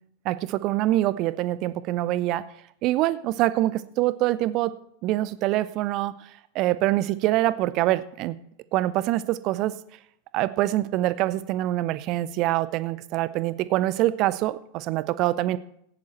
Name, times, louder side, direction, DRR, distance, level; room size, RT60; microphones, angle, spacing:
voice 1, 0.2-2.4 2.8-4.8 5.0-6.1 6.5-8.4 8.7-9.7 10.3-15.6, right 15 dB, 40° right, 16 dB, 0.6 m, -25 dB
16.0 x 9.7 x 4.5 m, 0.72 s
figure-of-eight pair, 90°, 0 cm